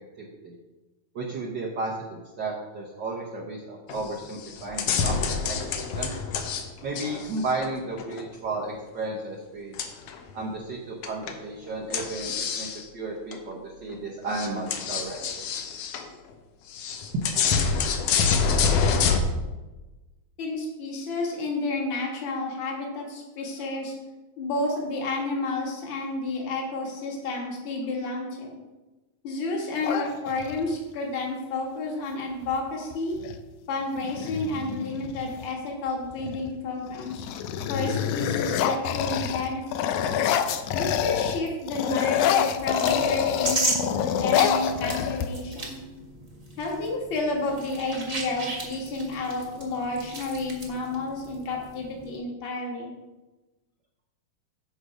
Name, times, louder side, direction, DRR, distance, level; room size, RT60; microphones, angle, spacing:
voice 1, 0.2-0.5 1.1-6.2 6.8-9.7 10.3-12.7 12.9-15.4 44.7-44.8, right 2 dB, 75° right, -3 dB, 1.0 m, -33 dB
sound 1, 3.9-4.1 4.4-6.6 7.0-8.2 9.8-10.3 11.0-11.4 11.9-12.8 13.3-13.4 13.9-14.0 14.3-16.0 16.7-19.2, left 6 dB, 70° left, 1.5 m, -26 dB
voice 2, 20.4-23.9 24.4-28.6 29.2-33.2 33.7-37.3 37.7-39.9 40.7-45.8 46.6-52.9, left 2 dB, 45° left, -1 dB, 2.2 m, -31 dB
sound 2, 29.8-30.8 32.5-32.6 32.9-33.4 34.0-35.5 36.1-36.5 36.9-41.4 41.7-45.6, left 9 dB, 90° left, 2.0 m, -27 dB
sound 3, 42.6-52.2, right 1 dB, 40° right, 0.5 m, -35 dB
7.9 x 6.5 x 5.0 m, 1.1 s
omnidirectional pair, 3.4 m